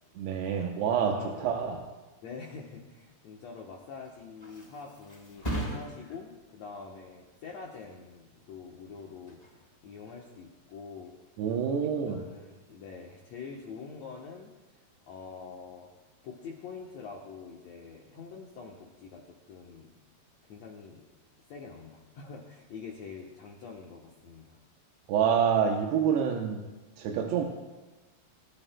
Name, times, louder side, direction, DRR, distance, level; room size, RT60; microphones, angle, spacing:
voice 1, 0.2-1.8 11.4-12.2 25.1-26.6 27.0-27.5, right 7 dB, 90° right, 2 dB, 2.9 m, -27 dB
voice 2, 1.1-1.6 2.2-11.1 11.8-14.5 15.1-15.9 16.2-19.9 20.5-21.1 21.5-24.6, left 5 dB, 70° left, -1 dB, 1.6 m, -45 dB
Thump thud, 3.8-11.3 11.7-12.1, right 1 dB, 10° left, 3.2 m, -42 dB
24.5 x 12.5 x 2.2 m, 1.2 s
omnidirectional pair, 4.5 m